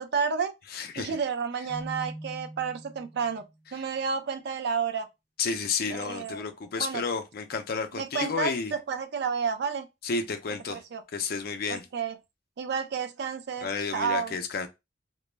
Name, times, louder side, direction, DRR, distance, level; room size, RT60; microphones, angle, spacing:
voice 1, 0.0-0.5 1.0-3.4 3.7-5.1 5.9-6.4 6.8-7.0 7.9-9.9 10.7-11.0 11.7-12.2 12.6-14.4, right 6 dB, 55° right, 0.4 m, -31 dB
voice 2, 0.7-1.2 5.4-8.7 10.0-10.8 11.1-11.8 13.6-14.7, left 5 dB, 50° left, 0.4 m, -31 dB
Keyboard (musical), 1.7-3.5, right 1 dB, 20° left, 0.7 m, -42 dB
2.2 x 2.0 x 3.1 m
head